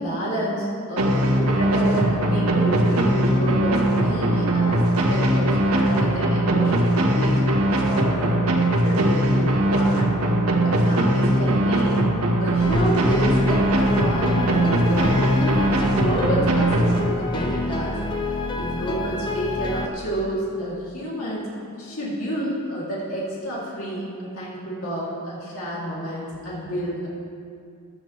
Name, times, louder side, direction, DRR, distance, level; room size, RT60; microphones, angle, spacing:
voice 1, 0.0-10.2 10.6-12.0 12.4-18.0 18.6-27.1, right 1 dB, 65° left, -7 dB, 2.9 m, -29 dB
sound 1, 1.0-17.5, right 1 dB, 80° right, 1.5 m, -20 dB
sound 2, 12.6-19.9, left 2 dB, 20° left, 0.7 m, -28 dB
16.0 x 11.5 x 3.3 m, 2.4 s
head